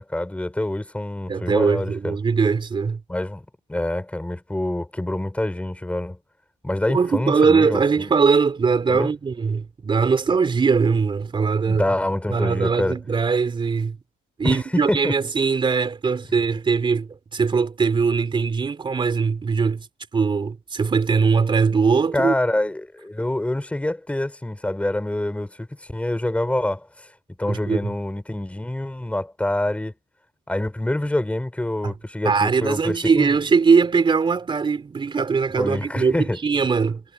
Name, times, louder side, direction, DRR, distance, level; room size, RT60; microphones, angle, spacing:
voice 1, 0.0-2.2 3.1-6.2 6.6-7.8 8.9-9.1 11.7-13.0 14.4-15.1 22.1-27.1 27.4-29.9 30.5-33.4 35.6-36.4, left 1 dB, 5° left, 6.2 m, -26 dB
voice 2, 1.3-3.0 6.9-11.9 12.3-14.0 14.4-19.9 20.1-22.3 27.5-27.9 31.8-31.9 32.2-37.0, right 5 dB, 30° right, 3.6 m, -21 dB
cardioid pair, 110°, 17 cm